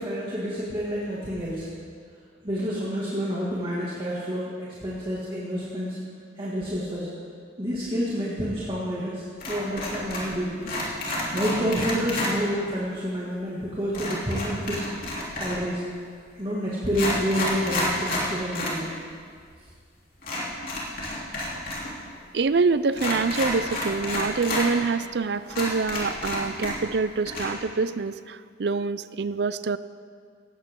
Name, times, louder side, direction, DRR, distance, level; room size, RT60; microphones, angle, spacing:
voice 1, 0.0-1.7 2.4-7.1 7.6-10.7 11.3-14.8 15.4-15.8 16.4-18.9, equal, 30° right, -7 dB, 2.2 m, -29 dB
sound 1, 9.4-10.4 10.6-12.3 13.9-15.7 16.4-16.5 16.9-18.8 19.1-19.2 20.2-21.9 22.1-22.2 22.9-24.7 25.1-25.2 25.5-27.0 27.3-27.5, left 1 dB, 55° left, 3.5 m, -30 dB
voice 2, 22.3-29.8, right 4 dB, 65° right, 15 dB, 0.5 m, -26 dB
18.0 x 15.5 x 3.8 m, 2.1 s
head